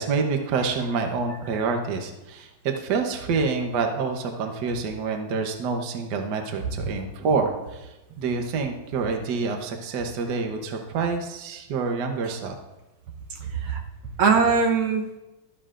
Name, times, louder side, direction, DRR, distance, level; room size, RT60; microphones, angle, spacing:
voice 1, 0.0-12.5, right 4 dB, 60° right, 4 dB, 1.5 m, -27 dB
voice 2, 6.6-7.0 12.2-12.3 13.3-15.2, right 5 dB, 80° right, 3 dB, 1.8 m, -23 dB
12.5 x 12.0 x 2.5 m, 1.0 s
omnidirectional pair, 2.2 m